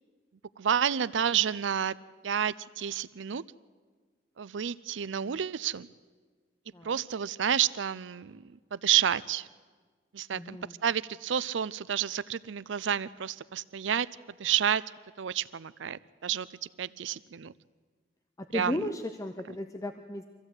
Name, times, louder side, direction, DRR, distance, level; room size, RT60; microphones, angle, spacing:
voice 1, 0.6-1.9 2.2-3.4 4.4-5.9 6.8-8.4 8.7-9.5 10.1-14.1 14.4-14.8 15.2-16.5 16.8-17.5 18.5-18.8, right 9 dB, 85° right, 18 dB, 0.5 m, -30 dB
voice 2, 10.3-10.8 18.4-20.2, left 1 dB, 20° left, 7 dB, 0.6 m, -35 dB
24.0 x 15.5 x 8.0 m, 1.5 s
head